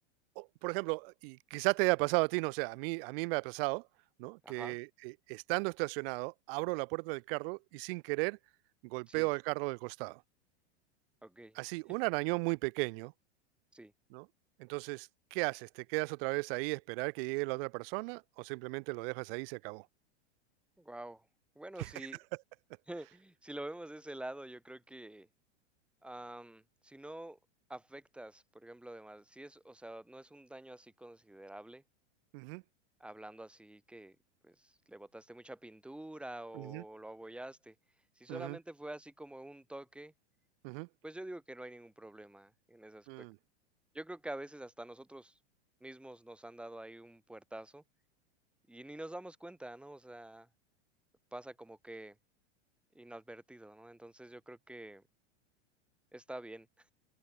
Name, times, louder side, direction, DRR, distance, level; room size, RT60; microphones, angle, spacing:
voice 1, 0.4-3.8 4.2-8.4 8.8-10.2 11.6-13.1 14.1-14.3 14.6-19.8 21.8-21.9 32.3-32.6 36.5-36.8 38.3-38.6 40.6-40.9 43.1-43.4, right 28 dB, 55° right, 2.1 m, -35 dB
voice 2, 4.4-4.8 9.1-9.3 11.2-11.6 13.7-13.9 20.8-21.3 21.6-22.2 22.9-25.3 26.0-27.4 27.7-31.8 33.0-34.2 34.4-37.7 38.2-40.1 41.0-43.3 43.9-45.3 45.8-47.8 48.7-50.5 51.3-52.2 52.9-55.0 56.1-56.7, right 1 dB, 5° right, 2.6 m, -47 dB
hypercardioid pair, 125°, 34 cm